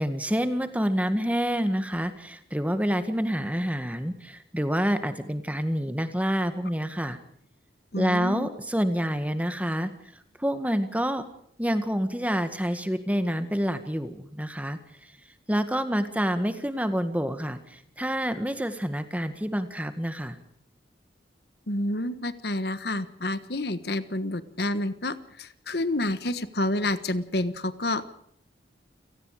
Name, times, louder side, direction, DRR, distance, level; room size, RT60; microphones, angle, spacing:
voice 1, 0.0-7.2 8.0-9.9 10.4-11.2 11.6-15.1 15.5-20.4, equal, 10° right, 9 dB, 1.8 m, -27 dB
voice 2, 7.9-8.5 21.7-28.0, left 1 dB, 60° left, 13 dB, 1.4 m, -29 dB
29.5 x 18.5 x 4.9 m, 0.68 s
head